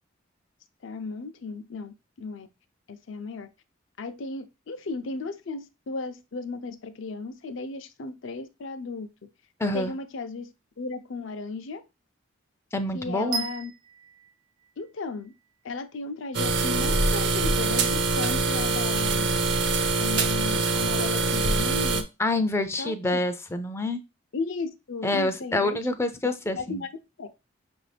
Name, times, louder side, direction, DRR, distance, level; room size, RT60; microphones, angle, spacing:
voice 1, 0.8-2.5 2.9-3.5 4.0-9.1 9.7-10.5 10.8-11.8 12.9-13.7 14.8-15.3 15.6-19.3 20.0-22.1 22.8-22.9 24.3-25.8 26.2-26.9 27.2-27.3, left 3 dB, 70° left, 10 dB, 0.5 m, -35 dB
voice 2, 9.6-9.9 12.7-13.4 22.2-24.0 25.0-26.8, left 2 dB, 15° left, 9 dB, 0.3 m, -27 dB
sound 1, 13.3-15.4, right 4 dB, 75° right, 1.1 m, -36 dB
sound 2, 16.3-22.0, right 3 dB, 60° right, 0.5 m, -24 dB
5.8 x 2.6 x 3.3 m, 0.27 s
head